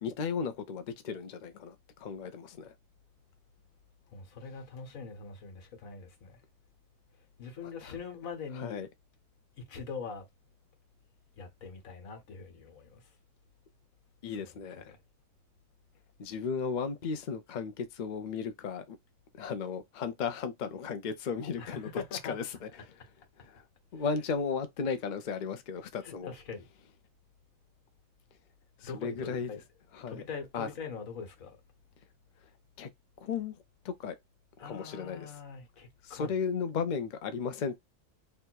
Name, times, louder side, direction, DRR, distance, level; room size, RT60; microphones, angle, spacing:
voice 1, 0.0-2.7 7.6-7.9 8.5-8.9 14.2-14.9 16.2-19.0 19.4-22.7 23.4-23.6 23.9-26.3 28.8-29.5 29.9-30.2 30.5-30.7 32.8-32.9 33.2-33.5 33.8-34.2 34.7-35.4 36.0-37.8, left 5 dB, 55° left, 0.5 m, -35 dB
voice 2, 4.1-6.4 7.4-8.9 9.6-10.3 11.4-13.0 14.3-15.0 21.6-22.4 24.0-24.2 26.0-26.6 28.8-29.6 30.1-31.6 34.6-36.3, left 5 dB, 80° left, 1.5 m, -43 dB
3.3 x 2.6 x 4.5 m
omnidirectional pair, 1.4 m